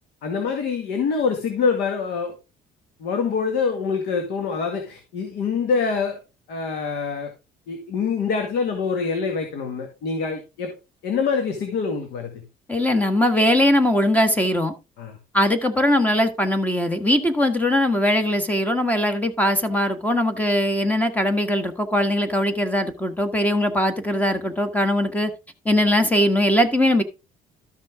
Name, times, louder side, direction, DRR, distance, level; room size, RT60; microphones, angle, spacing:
voice 1, 0.2-2.3 3.0-6.2 6.5-7.3 7.7-10.7 11.0-12.4 15.0-15.2, left 5 dB, 80° left, 2.0 m, -25 dB
voice 2, 12.7-14.7 15.3-25.3 25.6-27.0, left 1 dB, 10° left, 1.6 m, -20 dB
13.0 x 6.0 x 3.6 m
cardioid pair, 110°, 17 cm